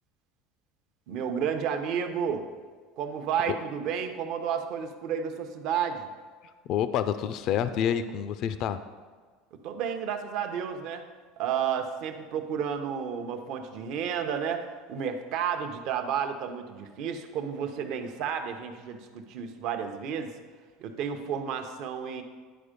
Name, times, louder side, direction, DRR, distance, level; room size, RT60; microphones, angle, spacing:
voice 1, 1.1-2.5 3.0-6.1 9.6-11.0 11.4-20.3 20.8-22.2, right 7 dB, 55° right, 6 dB, 0.8 m, -31 dB
voice 2, 6.7-8.8, left 9 dB, 50° left, 12 dB, 0.4 m, -28 dB
10.0 x 4.4 x 5.1 m, 1.5 s
supercardioid pair, 145°, 0 cm